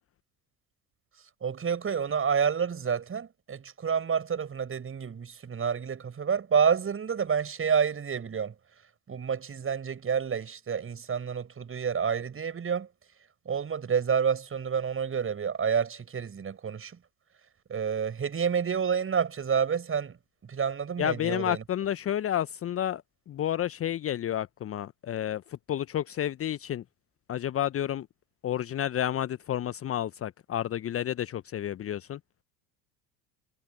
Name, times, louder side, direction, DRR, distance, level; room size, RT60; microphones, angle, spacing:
voice 1, 1.4-8.5 9.1-12.9 13.4-17.0 17.7-20.2 20.4-21.6, right 7 dB, 25° right, 7.9 m, -29 dB
voice 2, 21.0-23.0 23.3-26.8 27.3-28.1 28.4-32.2, left 11 dB, 30° left, 1.1 m, -30 dB
figure-of-eight pair, 70°, 48 cm